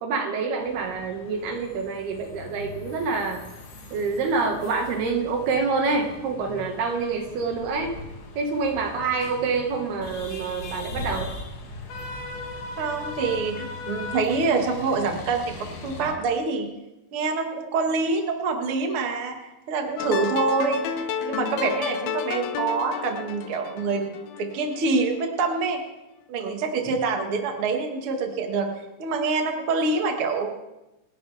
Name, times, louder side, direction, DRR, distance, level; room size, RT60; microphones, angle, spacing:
voice 1, 0.0-3.4 3.9-8.0 8.4-11.3 26.4-26.5, right 4 dB, 60° right, 2 dB, 3.4 m, -27 dB
sound 1, 0.6-16.1, left 3 dB, 55° left, 3.9 m, -39 dB
voice 2, 12.8-16.7 17.1-25.8 26.3-28.7 29.0-30.6, right 4 dB, 85° right, 3 dB, 1.2 m, -26 dB
sound 2, 20.0-25.1, left 7 dB, 75° left, 2.2 m, -31 dB
29.5 x 11.5 x 3.6 m, 0.96 s
omnidirectional pair, 5.8 m